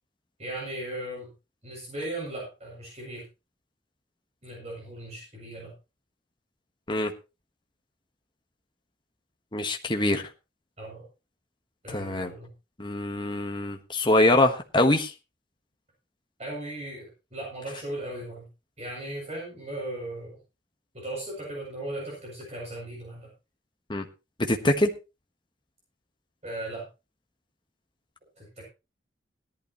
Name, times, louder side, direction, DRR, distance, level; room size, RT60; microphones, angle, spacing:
voice 1, 0.4-1.3 1.6-3.2 4.4-5.7 10.8-11.1 11.8-12.5 16.4-18.5 18.8-20.4 20.9-23.3 26.4-26.9 28.4-28.6, right 1 dB, 40° right, -3 dB, 7.9 m, -37 dB
voice 2, 9.5-10.2 11.9-12.3 12.8-15.1 23.9-24.0 24.5-24.9, left 1 dB, 25° left, 3 dB, 1.5 m, -24 dB
17.5 x 11.5 x 3.1 m, 0.29 s
head